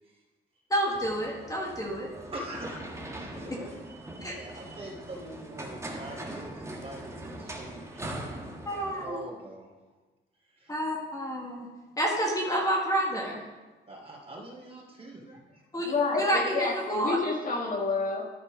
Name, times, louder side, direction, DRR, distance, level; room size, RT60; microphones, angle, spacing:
voice 1, 0.7-2.1 4.2-4.4 8.6-9.2 10.7-11.7 12.0-13.4 15.7-17.2, right 1 dB, 15° left, -2 dB, 1.8 m, -29 dB
sound 1, 0.9-9.1, right 1 dB, 15° right, 1.4 m, -41 dB
voice 2, 2.3-3.7 4.3-9.9 10.4-10.8 13.9-15.6, right 1 dB, 30° right, -2 dB, 2.9 m, -44 dB
voice 3, 15.9-18.2, left 4 dB, 40° left, -1 dB, 1.6 m, -29 dB
13.0 x 4.4 x 5.1 m, 1.2 s
cardioid pair, 90°, 20 cm